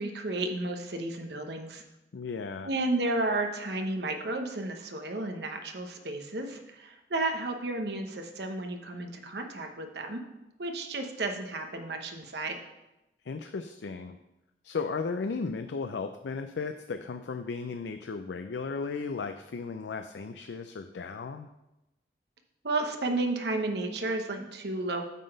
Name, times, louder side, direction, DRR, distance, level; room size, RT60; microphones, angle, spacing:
voice 1, 0.0-1.8 2.6-10.2 10.6-12.6 22.6-25.0, right 2 dB, 70° right, 5 dB, 1.0 m, -32 dB
voice 2, 2.1-2.7 13.3-14.2 14.6-21.5, left 4 dB, 80° left, 7 dB, 0.4 m, -35 dB
9.0 x 4.0 x 6.5 m, 0.94 s
head